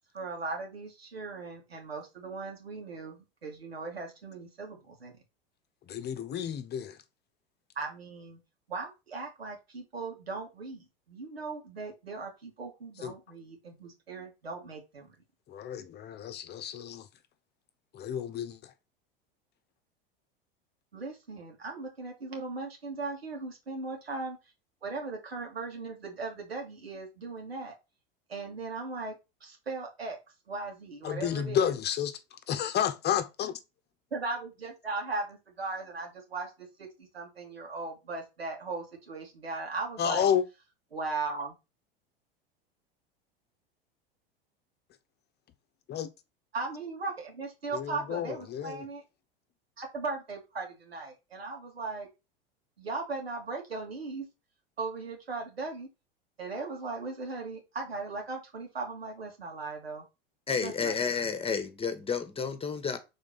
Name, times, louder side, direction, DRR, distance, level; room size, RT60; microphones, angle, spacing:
voice 1, 0.1-5.2 7.8-8.4 8.7-15.1 20.9-24.4 24.8-27.7 28.3-30.2 30.5-31.7 34.1-40.3 40.9-41.6 46.5-49.0 49.8-52.1 52.8-54.2 54.8-55.9 56.4-60.1 60.6-61.0, right 3 dB, 90° right, 2.3 m, -38 dB
voice 2, 5.9-7.0 13.0-13.1 15.5-17.1 17.9-18.7 31.0-32.2 32.5-33.6 40.0-40.4 45.9-46.1 47.7-48.8, left 9 dB, 35° left, 0.9 m, -31 dB
voice 3, 60.5-63.0, left 6 dB, 20° left, 1.4 m, -31 dB
5.1 x 4.0 x 5.5 m
hypercardioid pair, 85°, 30 cm